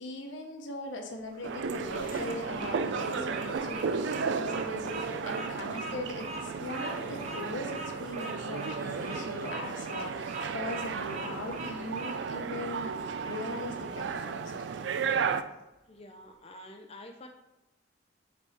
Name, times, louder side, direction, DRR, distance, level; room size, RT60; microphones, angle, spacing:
voice 1, 0.0-14.5, left 1 dB, 80° left, 3 dB, 1.0 m, -40 dB
sound 1, 1.2-14.5, left 1 dB, 50° left, 1.0 m, -48 dB
Bird vocalization bird call bird song, 1.3-12.2, right 3 dB, 35° right, 0.8 m, -41 dB
sound 2, 1.4-15.4, right 5 dB, 70° right, 0.4 m, -34 dB
voice 2, 15.9-17.3, left 1 dB, 30° left, 3 dB, 0.5 m, -48 dB
5.4 x 4.7 x 4.1 m, 0.98 s
head